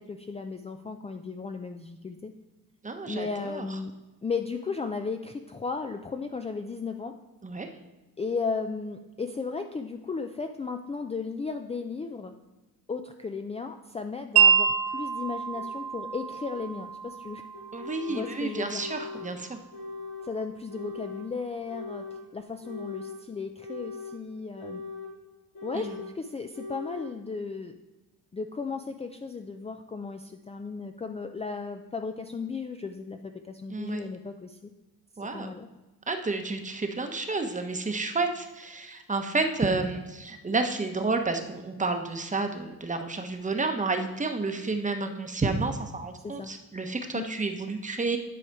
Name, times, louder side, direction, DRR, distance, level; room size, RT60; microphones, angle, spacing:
voice 1, 0.0-2.3 3.1-3.9 4.2-7.1 8.2-12.3 12.9-17.4 17.8-18.8 20.2-22.1 22.3-24.8 25.6-27.7 28.3-34.7 35.3-35.7 46.2-46.5 47.1-47.3, left 4 dB, 15° left, 6 dB, 0.4 m, -35 dB
voice 2, 2.8-3.7 7.4-7.7 17.7-19.6 25.8-26.0 33.7-34.0 35.2-35.5 36.1-48.2, right 3 dB, 20° right, 6 dB, 0.9 m, -30 dB
Wind chime, 14.4-20.4, right 7 dB, 75° right, 0.7 m, -28 dB
sound 1, 15.5-15.6 16.5-16.6 17.5-18.3 18.7-19.3 19.7-20.3 20.7-21.2 21.7-22.2 22.6-23.2 23.6-24.2 24.6-25.1 25.5-26.1 26.5-27.1, left 4 dB, 70° left, 3.0 m, -40 dB
10.0 x 4.8 x 4.7 m, 1.1 s
cardioid pair, 100°, 38 cm